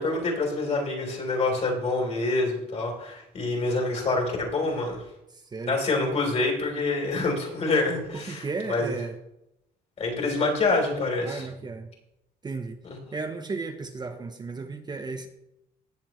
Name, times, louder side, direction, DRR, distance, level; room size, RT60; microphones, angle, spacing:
voice 1, 0.0-5.0 5.7-8.9 10.0-11.5, left 3 dB, 40° left, 0 dB, 3.7 m, -26 dB
voice 2, 5.3-5.8 8.1-9.2 11.2-11.9 12.4-12.8 13.1-15.3, right 4 dB, 25° right, 6 dB, 0.9 m, -34 dB
18.0 x 7.0 x 3.1 m, 0.86 s
cardioid pair, 110°, 17 cm